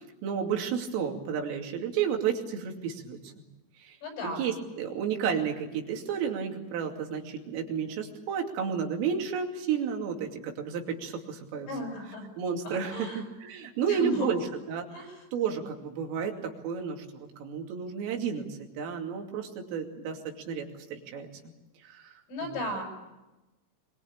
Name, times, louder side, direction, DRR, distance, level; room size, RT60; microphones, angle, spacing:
voice 1, 0.2-3.2 3.8-4.0 4.2-11.7 12.4-14.4 14.7-14.9 15.3-20.2 20.5-21.3 21.8-22.2 22.5-22.8, right 7 dB, 90° right, 2 dB, 5.2 m, -32 dB
voice 2, 4.0-4.5 11.7-12.3 12.6-13.2 13.8-14.3 14.9-15.2 22.3-22.8, equal, 80° left, 3 dB, 8.3 m, -35 dB
24.0 x 23.0 x 8.7 m, 1.0 s
omnidirectional pair, 5.7 m